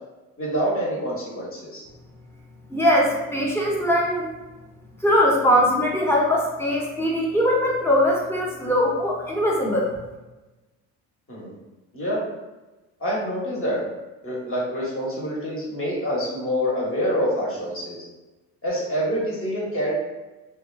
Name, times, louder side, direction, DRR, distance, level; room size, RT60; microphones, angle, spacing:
voice 1, 0.4-1.8 11.3-11.5 11.9-12.2 13.0-13.8 14.2-18.0 18.6-19.9, equal, 30° left, -4 dB, 1.2 m, -26 dB
voice 2, 2.7-4.3 5.0-9.9, equal, 5° left, -3 dB, 0.7 m, -21 dB
2.7 x 2.3 x 2.3 m, 1.1 s
hypercardioid pair, 60°, 40 cm